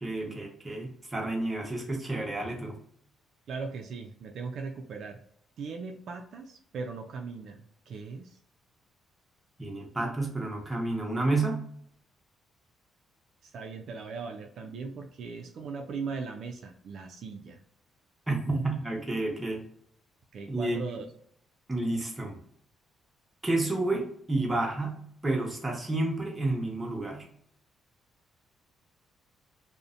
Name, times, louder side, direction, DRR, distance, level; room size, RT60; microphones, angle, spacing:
voice 1, 0.0-2.8 9.6-11.6 18.3-19.6 20.5-20.8 21.7-22.3 23.4-25.0 25.2-27.3, right 2 dB, 20° right, 0 dB, 0.8 m, -30 dB
voice 2, 3.5-5.2 5.6-8.4 13.4-17.6 20.3-21.1, right 4 dB, 65° right, 3 dB, 0.3 m, -39 dB
2.5 x 2.0 x 2.5 m, 0.66 s
cardioid pair, 90°, 0 cm